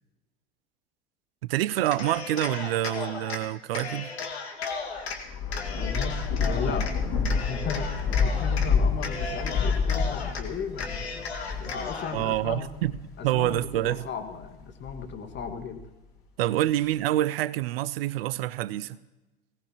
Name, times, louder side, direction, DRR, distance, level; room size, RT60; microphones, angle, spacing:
voice 1, 1.4-4.1 12.1-12.9 13.2-14.0 16.4-19.0, right 14 dB, 65° right, 18 dB, 0.6 m, -27 dB
Cheering, 1.8-3.4 3.7-5.2 5.5-6.9 7.2-8.7 9.0-10.4 10.7-12.2, left 4 dB, 75° left, 1.9 m, -35 dB
Thunder / Rain, 5.0-13.9 14.4-15.8, left 5 dB, 55° left, 6.8 m, -29 dB
voice 2, 5.7-6.9 7.3-12.7 13.2-15.8, left 6 dB, 35° left, 5 dB, 1.9 m, -36 dB
20.0 x 17.5 x 3.0 m, 1.0 s
figure-of-eight pair, 80°, 32 cm